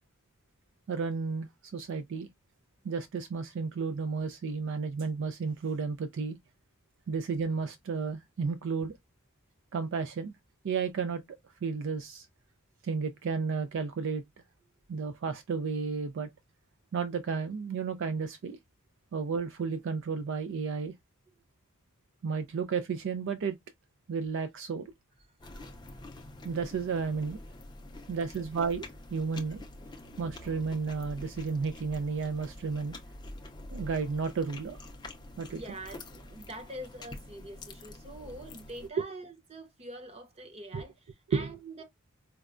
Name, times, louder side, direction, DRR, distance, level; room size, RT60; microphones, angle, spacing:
voice 1, 0.9-2.3 2.8-6.4 7.1-8.9 9.7-10.3 10.6-11.2 11.6-12.3 12.8-14.2 14.9-16.3 16.9-18.6 19.1-20.9 22.2-23.6 24.1-24.8 25.6-25.7 26.4-27.4 28.1-29.6 30.2-33.0 33.7-34.9 35.4-35.6 40.7-40.8 41.3-41.5, right 5 dB, 60° right, 0.3 m, -32 dB
sound 1, 25.4-38.9, left 2 dB, 20° left, 0.5 m, -47 dB
voice 2, 35.4-41.8, right 1 dB, 30° right, 0.8 m, -45 dB
4.5 x 2.1 x 2.4 m
head